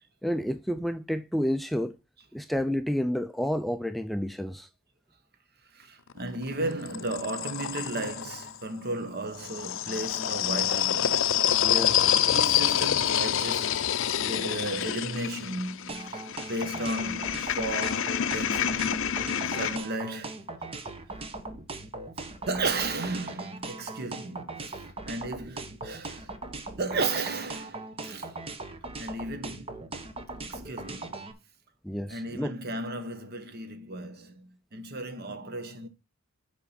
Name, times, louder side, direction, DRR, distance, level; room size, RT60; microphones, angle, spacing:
voice 1, 0.2-2.0 2.3-4.7 11.6-12.2 31.8-32.5, equal, ahead, 0.3 m, -30 dB
voice 2, 5.7-11.4 12.3-13.9 14.1-16.2 16.5-19.1 19.5-20.5 22.5-26.3 26.8-28.4 29.0-30.0 30.4-31.3 32.1-35.9, right 2 dB, 50° right, 1.1 m, -34 dB
sound 1, 6.1-8.5 9.3-19.8, left 10 dB, 70° left, 0.5 m, -27 dB
sound 2, 15.9-31.3, right 3 dB, 30° right, 1.0 m, -39 dB
7.0 x 4.9 x 5.7 m
head